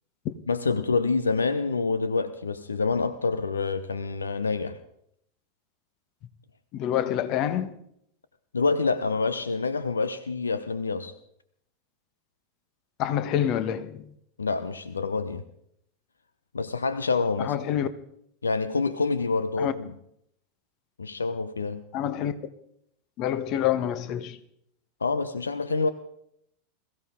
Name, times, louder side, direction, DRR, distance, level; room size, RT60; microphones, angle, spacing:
voice 1, 0.5-4.8 8.5-11.1 14.4-15.4 16.5-17.5 18.4-19.9 21.0-21.8 25.0-25.9, left 4 dB, 75° left, 0.9 m, -27 dB
voice 2, 6.7-7.8 13.0-14.1 17.4-17.9 19.6-19.7 21.9-22.3 23.2-24.4, left 10 dB, 40° left, 1.3 m, -27 dB
21.5 x 16.0 x 3.8 m
figure-of-eight pair, 85°, 0 cm